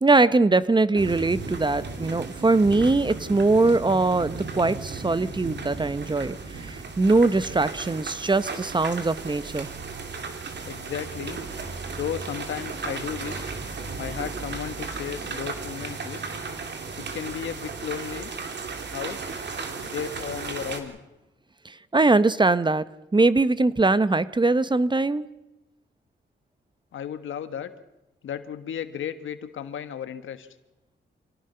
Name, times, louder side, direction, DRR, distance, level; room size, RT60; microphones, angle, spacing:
voice 1, 0.0-9.7 21.6-25.3, right 3 dB, 25° right, 15 dB, 0.9 m, -22 dB
sound 1, 1.0-20.8, right 4 dB, 65° right, 3.1 m, -35 dB
voice 2, 10.6-11.4 12.0-13.5 14.0-16.2 17.0-18.3 18.9-19.2 19.8-21.0 26.9-27.7 28.2-30.5, left 9 dB, 90° left, 11 dB, 1.5 m, -34 dB
26.0 x 18.0 x 5.7 m, 1.0 s
cardioid pair, 80°, 20 cm